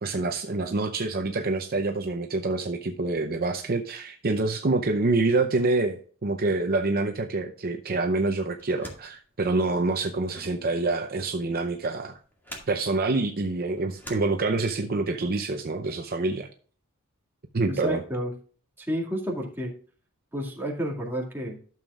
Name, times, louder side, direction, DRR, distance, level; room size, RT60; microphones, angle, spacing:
voice 1, 0.0-12.2 12.7-16.5 17.5-18.0, right 3 dB, 45° right, 5 dB, 0.6 m, -26 dB
sound 1, 8.6-14.9, equal, 10° left, 2.1 m, -47 dB
voice 2, 17.7-18.3 18.8-19.7 20.3-21.6, equal, 10° right, -2 dB, 2.1 m, -30 dB
12.0 x 7.1 x 2.4 m, 0.42 s
head